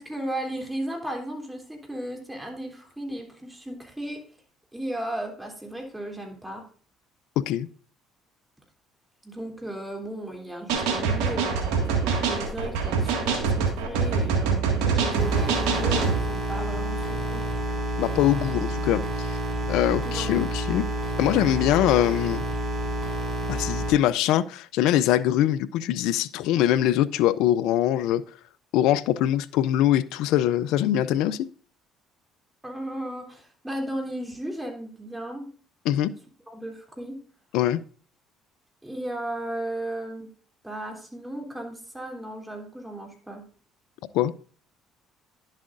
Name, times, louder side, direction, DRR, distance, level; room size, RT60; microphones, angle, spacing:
voice 1, 0.0-4.2 4.7-6.6 9.2-17.5 20.0-20.3 32.6-35.5 36.5-37.2 38.8-40.3 40.6-43.5, right 1 dB, 10° right, 2 dB, 3.1 m, -35 dB
sound 1, 10.7-16.2, right 5 dB, 80° right, 1.9 m, -24 dB
sound 2, 15.2-23.9, right 1 dB, 40° right, 5.0 m, -29 dB
voice 2, 18.0-19.4 19.7-20.8 21.2-22.4 23.5-28.2 28.7-31.5 35.9-36.1 37.5-37.8 44.1-44.3, left 12 dB, 75° left, 18 dB, 0.4 m, -23 dB
10.5 x 7.5 x 2.6 m, 0.43 s
supercardioid pair, 70°, 0 cm